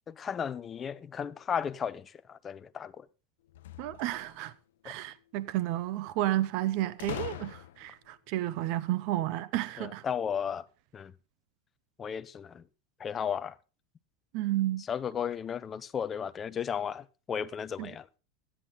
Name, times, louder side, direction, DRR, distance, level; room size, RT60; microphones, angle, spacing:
voice 1, 0.1-3.1 4.8-5.0 9.8-10.6 10.9-11.1 12.0-12.6 13.0-13.5 14.9-18.1, left 7 dB, 15° left, 0.5 m, -34 dB
sound 1, 3.5-4.5 7.0-8.0, left 13 dB, 80° left, 0.7 m, -41 dB
voice 2, 3.8-4.5 4.8-10.0 14.3-14.8 17.8-17.9, right 14 dB, 40° right, 0.7 m, -31 dB
15.0 x 10.0 x 3.7 m
supercardioid pair, 180°, 0 cm